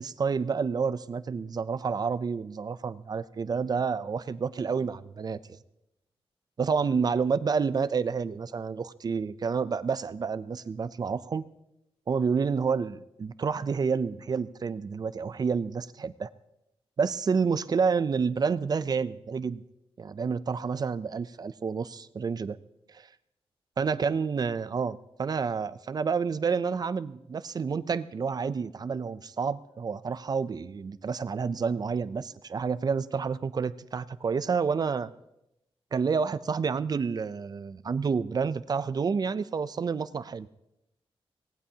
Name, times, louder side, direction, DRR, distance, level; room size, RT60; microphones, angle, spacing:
voice 1, 0.0-5.4 6.6-11.4 12.1-16.3 17.0-19.6 20.0-22.6 23.8-35.1 35.9-40.5, right 5 dB, 40° right, 15 dB, 0.4 m, -29 dB
24.0 x 18.5 x 2.8 m, 0.87 s
wide cardioid pair, 160°, 10 cm